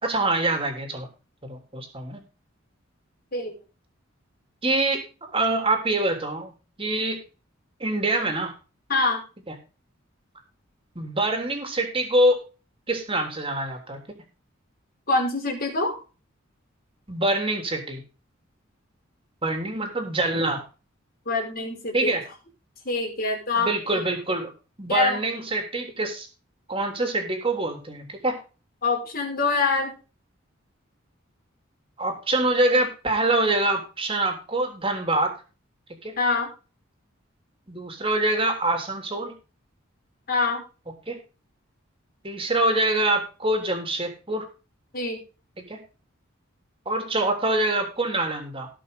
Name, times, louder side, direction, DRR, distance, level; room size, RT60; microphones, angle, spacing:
voice 1, 0.0-1.1 1.4-2.2 4.6-6.5 6.8-7.2 7.8-8.5 9.5-9.6 11.0-12.4 12.9-14.0 17.1-18.0 19.4-20.6 21.9-22.3 23.6-24.5 24.8-26.3 26.7-28.4 32.0-35.3 36.0-36.2 37.7-39.3 41.1-41.2 42.2-44.4 45.6-45.8 46.9-48.7, right 2 dB, 25° right, 4 dB, 3.5 m, -25 dB
voice 2, 8.9-9.2 15.1-16.0 21.3-22.1 22.9-23.7 23.9-24.0 24.9-25.2 28.8-30.0 36.2-36.5 40.3-40.6 44.9-45.2, left 3 dB, 50° left, 1 dB, 5.2 m, -25 dB
18.5 x 6.4 x 3.8 m, 0.33 s
head